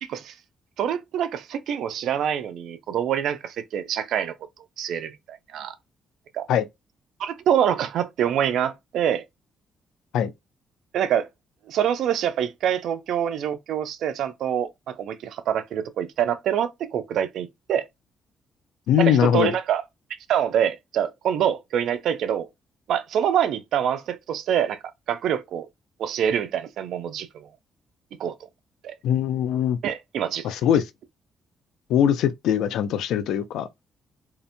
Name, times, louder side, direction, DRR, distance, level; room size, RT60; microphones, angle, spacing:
voice 1, 0.0-0.3 0.8-4.3 4.8-5.7 6.3-6.5 7.2-9.2 10.9-11.3 11.7-17.9 19.0-19.8 20.3-22.5 22.9-24.8 25.1-25.7 26.0-27.5 28.2-28.4 28.8-28.9 29.8-30.5, right 9 dB, 75° right, 0.4 m, -25 dB
voice 2, 18.9-19.5 29.0-29.8 30.4-30.8 31.9-33.7, left 9 dB, 85° left, 0.3 m, -21 dB
2.7 x 2.0 x 2.5 m
cardioid pair, 90°, 0 cm